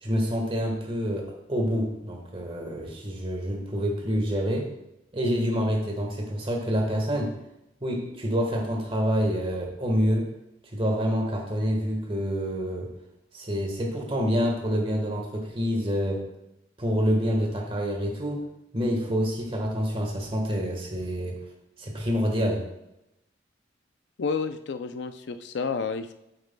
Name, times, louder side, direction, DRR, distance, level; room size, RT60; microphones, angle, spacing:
voice 1, 0.0-4.7 5.1-7.3 7.8-10.3 10.7-12.9 13.3-16.2 16.8-18.4 18.7-21.4 21.8-22.6, equal, 30° right, 1 dB, 1.4 m, -27 dB
voice 2, 24.2-26.1, left 5 dB, 65° left, 9 dB, 0.4 m, -30 dB
9.1 x 7.9 x 2.2 m, 0.88 s
head